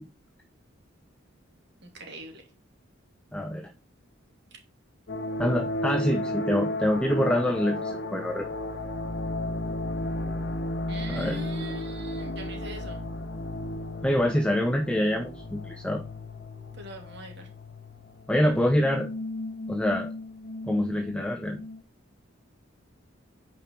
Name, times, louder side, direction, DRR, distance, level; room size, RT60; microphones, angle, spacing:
voice 1, 1.8-2.4 10.9-13.0 16.8-17.5, right 1 dB, 60° right, 2 dB, 2.8 m, -41 dB
voice 2, 3.3-3.7 5.4-8.4 11.1-11.4 14.0-16.0 18.3-19.1 19.7-20.1 20.7-21.6, left 1 dB, 5° left, 2 dB, 0.8 m, -25 dB
sound 1, 5.1-21.8, left 1 dB, 55° left, 1.0 m, -34 dB
9.1 x 5.3 x 4.6 m, 0.31 s
head